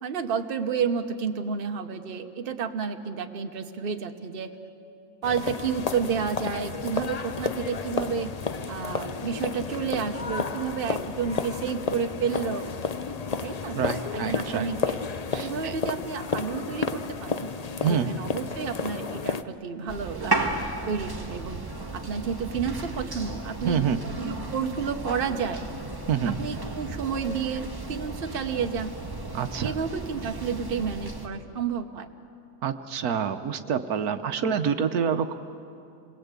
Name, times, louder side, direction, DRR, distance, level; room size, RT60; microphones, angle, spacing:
voice 1, 0.0-4.5 5.2-8.3 8.7-12.7 13.4-13.8 14.1-15.0 15.3-17.5 17.9-20.5 20.9-21.6 21.9-23.8 24.2-25.7 26.4-28.9 29.6-32.1, right 6 dB, 40° right, 6 dB, 1.2 m, -30 dB
sound 1, 5.2-19.4, left 5 dB, 45° left, 0.5 m, -32 dB
voice 2, 13.7-14.7 15.3-15.7 17.8-18.1 23.6-24.0 26.1-26.4 29.3-29.7 32.6-35.3, right 7 dB, 75° right, 9 dB, 1.3 m, -27 dB
sound 2, 19.9-31.3, right 2 dB, 15° right, 1.5 m, -34 dB
27.5 x 21.0 x 8.3 m, 2.7 s
omnidirectional pair, 1.6 m